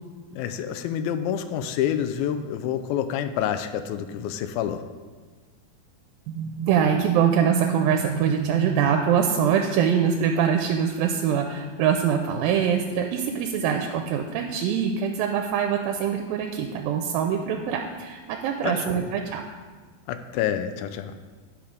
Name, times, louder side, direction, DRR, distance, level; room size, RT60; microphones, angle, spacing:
voice 1, 0.3-4.8 18.6-19.1 20.1-21.1, left 9 dB, 90° left, 10 dB, 2.4 m, -28 dB
voice 2, 6.3-19.4, right 7 dB, 85° right, 3 dB, 2.3 m, -23 dB
8.6 x 6.0 x 5.1 m, 1.4 s
omnidirectional pair, 4.1 m